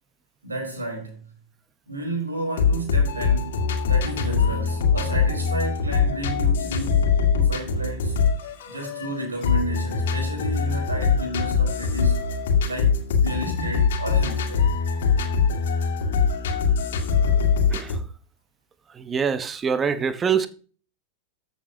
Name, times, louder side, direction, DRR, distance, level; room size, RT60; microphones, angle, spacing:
voice 1, 0.4-1.2 1.9-7.1 7.3-8.3 8.7-12.2 12.6-14.7, right 1 dB, 80° right, 4.5 m, -32 dB
sound 1, 2.6-18.0, left 5 dB, 60° left, 1.9 m, -22 dB
voice 2, 19.0-20.5, right 6 dB, 20° right, 0.9 m, -24 dB
14.0 x 7.0 x 2.9 m
figure-of-eight pair, 90°, 0 cm